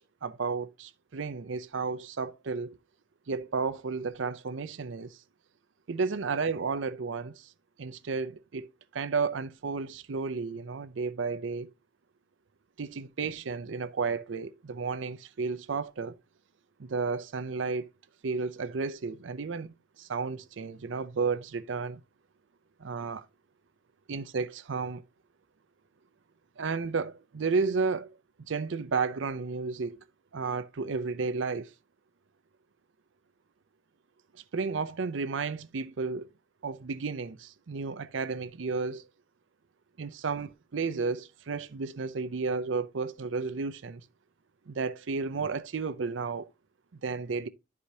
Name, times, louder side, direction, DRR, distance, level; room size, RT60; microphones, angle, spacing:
voice 1, 0.2-2.8 3.3-5.2 5.9-7.5 7.8-8.7 8.9-11.7 12.8-16.1 16.8-17.9 18.2-22.0 22.8-23.3 24.1-25.0 26.6-28.1 28.5-30.0 30.3-31.7 34.5-36.3 36.6-39.0 40.0-44.0 44.7-46.5 47.0-47.5, right 4 dB, 80° right, 0.6 m, -32 dB
11.5 x 4.9 x 2.7 m
head